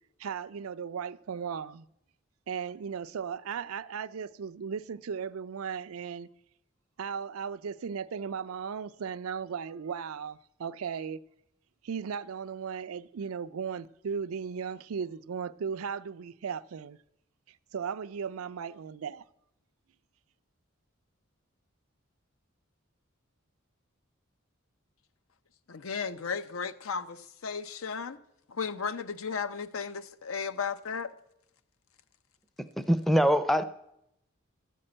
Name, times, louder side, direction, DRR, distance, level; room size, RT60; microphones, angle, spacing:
voice 1, 0.2-1.9 2.5-6.3 7.0-11.2 11.8-17.0 17.7-19.2, right 6 dB, 90° right, 0.4 m, -36 dB
voice 2, 25.7-28.2 28.5-31.1, left 5 dB, 80° left, 0.6 m, -35 dB
voice 3, 32.9-33.6, equal, ahead, 0.4 m, -23 dB
12.5 x 5.4 x 8.8 m
head